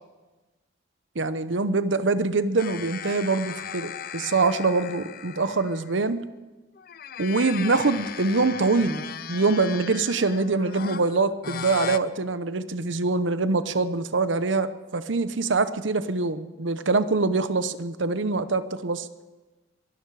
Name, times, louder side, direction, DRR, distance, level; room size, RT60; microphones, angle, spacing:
voice 1, 1.1-6.3 7.2-19.1, right 3 dB, 75° right, 12 dB, 0.9 m, -24 dB
sound 1, 2.6-6.1 6.8-12.0, left 8 dB, 45° left, 0.5 m, -37 dB
23.5 x 12.5 x 4.8 m, 1.2 s
head